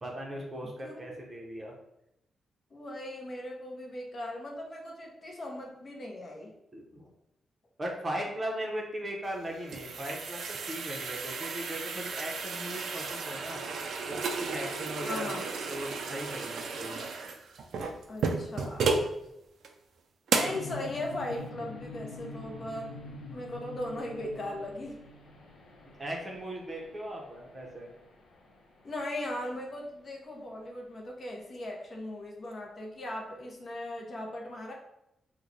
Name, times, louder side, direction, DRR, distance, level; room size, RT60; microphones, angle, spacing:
voice 1, 0.0-1.7 6.7-7.1 7.8-13.6 14.1-17.1 26.0-27.9, equal, 25° right, -1 dB, 0.6 m, -38 dB
voice 2, 0.8-1.1 2.7-6.5 15.0-15.5 18.1-18.9 20.3-22.9 23.2-25.0 28.8-34.7, left 1 dB, 40° left, 0 dB, 0.6 m, -38 dB
sound 1, 9.3-19.1 19.6-19.7 20.3-20.7, right 4 dB, 75° right, 0.3 m, -33 dB
sound 2, 20.4-29.3, left 2 dB, 80° left, 0.6 m, -46 dB
3.0 x 2.1 x 3.9 m, 0.84 s
wide cardioid pair, 135°, 0 cm